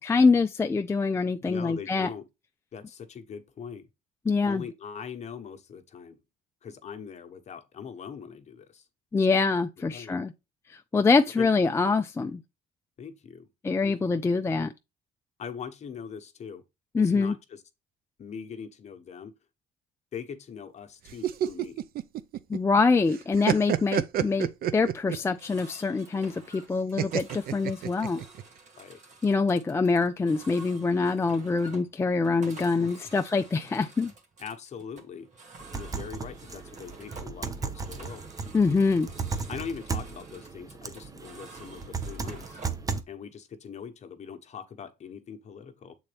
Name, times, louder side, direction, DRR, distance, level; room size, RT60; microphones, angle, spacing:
voice 1, 0.0-2.1 4.3-4.6 9.1-10.3 10.7-12.4 13.6-14.7 16.9-17.3 22.5-28.2 29.2-34.1 38.5-39.1, left 4 dB, 15° left, 0.4 m, -25 dB
voice 2, 1.4-2.2 2.7-3.9 4.4-6.2 6.6-8.8 9.3-9.4 9.8-10.2 11.4-11.5 13.0-13.5 13.8-14.2 15.4-16.6 17.0-17.6 18.2-19.3 20.1-21.8 25.1-25.3 28.8-29.0 32.8-33.1 34.4-35.3 35.7-38.2 39.5-42.6 43.1-45.9, left 7 dB, 40° left, 1.1 m, -41 dB
sound 1, 21.1-22.8 23.1-25.3 27.0-28.4, right 10 dB, 60° right, 0.6 m, -28 dB
sound 2, 25.2-42.9, right 3 dB, 45° right, 1.9 m, -50 dB
sound 3, 35.6-43.0, right 5 dB, 20° right, 0.7 m, -36 dB
7.1 x 3.9 x 3.3 m
cardioid pair, 110°, 17 cm